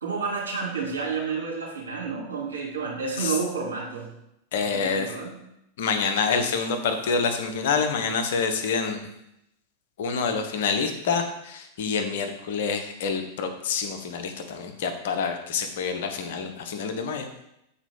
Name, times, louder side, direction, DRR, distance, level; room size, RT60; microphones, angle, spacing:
voice 1, 0.0-4.1 4.6-5.4, right 5 dB, 75° right, -3 dB, 2.4 m, -30 dB
voice 2, 4.5-5.1 5.8-9.0 10.0-17.3, left 5 dB, 55° left, 5 dB, 1.0 m, -27 dB
7.2 x 4.4 x 5.4 m, 0.82 s
figure-of-eight pair, 90°, 0 cm